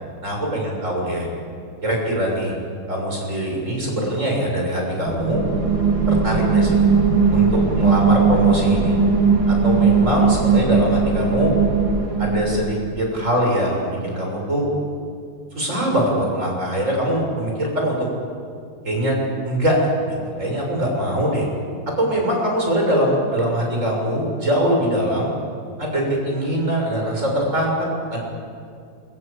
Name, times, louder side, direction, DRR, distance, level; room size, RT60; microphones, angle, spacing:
voice 1, 0.2-1.3 1.8-2.5 2.9-5.4 6.1-6.8 7.3-9.0 9.5-11.5 12.2-14.7 15.6-18.0 18.8-19.2 19.4-19.9 20.4-21.5 22.0-25.3 25.8-28.2, equal, 35° right, 0 dB, 7.0 m, -22 dB
sound 1, 5.1-12.8, right 5 dB, 60° right, 4.0 m, -18 dB
28.0 x 23.0 x 8.7 m, 2.3 s
omnidirectional pair, 2.3 m